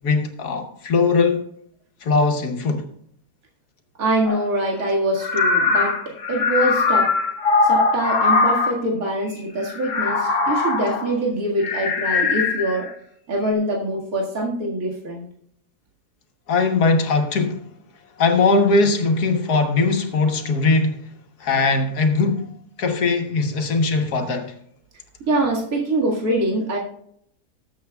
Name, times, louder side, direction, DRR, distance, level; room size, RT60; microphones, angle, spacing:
voice 1, 0.0-1.4 2.0-2.9 16.5-17.6 18.2-21.0 21.4-22.5 22.8-24.5, left 3 dB, 85° left, 1.8 m, -20 dB
voice 2, 4.0-6.0 6.3-7.1 7.6-12.9 13.3-15.3 25.3-26.8, right 1 dB, 65° right, 2.4 m, -24 dB
sound 1, 4.3-4.4 5.2-8.8 9.6-11.1 11.6-12.9, left 4 dB, 55° left, 1.5 m, -21 dB
19.5 x 7.7 x 2.3 m
omnidirectional pair, 1.6 m